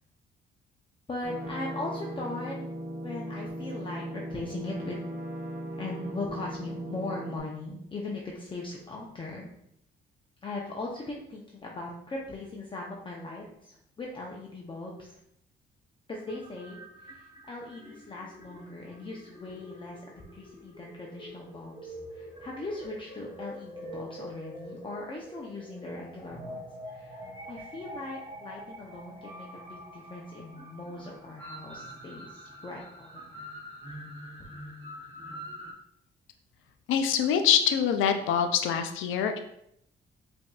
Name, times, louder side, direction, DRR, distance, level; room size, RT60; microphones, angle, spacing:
voice 1, 1.1-2.7 3.0-5.0 5.8-9.5 10.4-15.2 16.1-33.6, left 2 dB, 25° left, -2 dB, 0.6 m, -39 dB
sound 1, 1.2-7.4, right 1 dB, 45° right, 1.4 m, -38 dB
sound 2, 16.2-35.7, equal, 20° right, 1.1 m, -45 dB
voice 2, 36.9-39.4, left 8 dB, 85° left, 7 dB, 0.4 m, -25 dB
5.1 x 2.6 x 2.3 m, 0.75 s
cardioid pair, 90°, 20 cm